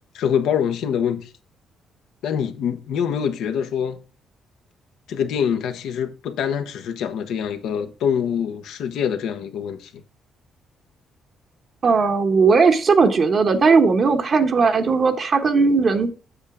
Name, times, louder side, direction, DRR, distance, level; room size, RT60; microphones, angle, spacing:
voice 1, 0.1-1.3 2.2-4.0 5.1-10.0, left 8 dB, 85° left, 1.0 m, -25 dB
voice 2, 11.8-16.1, right 4 dB, 50° right, 1.1 m, -17 dB
8.1 x 6.7 x 3.6 m
cardioid pair, 90°, 0 cm